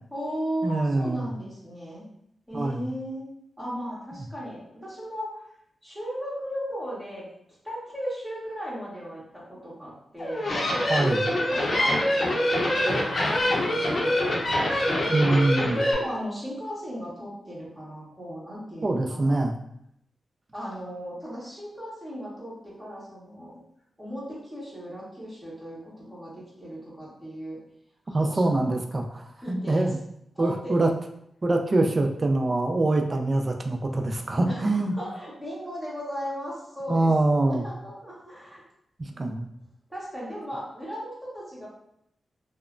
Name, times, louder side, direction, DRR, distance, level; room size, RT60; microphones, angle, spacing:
voice 1, 0.1-2.0 2.5-3.3 3.6-5.4 5.8-7.2 7.6-10.5 11.5-15.3 15.7-19.4 20.5-23.6 24.0-27.6 28.0-28.8 29.4-29.9 30.3-30.8 34.5-37.1 37.5-38.6 39.9-41.7, equal, 5° right, -8 dB, 1.4 m, -36 dB
voice 2, 0.6-1.3 2.5-2.8 10.9-11.3 15.1-15.8 18.8-19.6 28.1-30.0 30.4-30.9 31.4-34.9 36.9-37.6 39.0-39.5, right 2 dB, 35° right, 4 dB, 0.3 m, -24 dB
sound 1, 10.2-15.9, left 1 dB, 50° left, 0.6 m, -25 dB
3.0 x 2.1 x 2.4 m, 0.75 s
cardioid pair, 75°, 0 cm